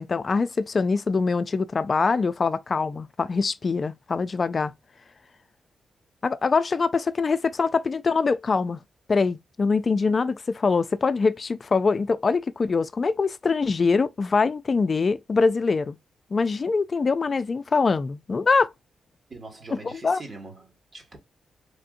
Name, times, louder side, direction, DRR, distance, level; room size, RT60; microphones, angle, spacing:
voice 1, 0.0-4.7 6.2-8.8 9.1-16.0 16.3-18.7 19.7-20.2, left 4 dB, 40° left, 0.3 m, -23 dB
voice 2, 19.3-21.2, right 3 dB, 40° right, 1.5 m, -42 dB
3.4 x 2.6 x 2.5 m
cardioid pair, 100°, 0 cm